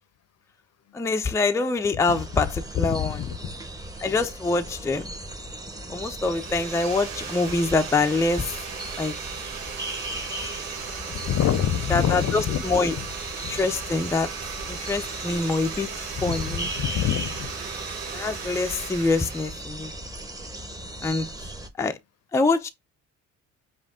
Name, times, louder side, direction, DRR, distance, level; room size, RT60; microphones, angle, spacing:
voice 1, 0.9-3.2 4.0-5.1 5.9-8.6 9.0-9.2 11.9-13.0 13.5-14.3 14.7-16.7 18.1-19.9 21.0-21.5 21.8-22.0 22.3-22.7, left 3 dB, 10° left, 0.5 m, -25 dB
sound 1, 2.1-21.7, right 1 dB, 10° right, 0.9 m, -38 dB
voice 2, 2.8-3.5 11.1-12.6 13.4-13.5 16.3-17.5, left 10 dB, 45° left, 0.7 m, -26 dB
sound 2, 6.2-19.7, right 6 dB, 75° right, 1.3 m, -37 dB
sound 3, 13.2-13.6 14.2-14.6 15.2-15.9 16.2-18.0, right 6 dB, 40° right, 1.6 m, -48 dB
5.2 x 2.4 x 3.6 m
hypercardioid pair, 60°, 36 cm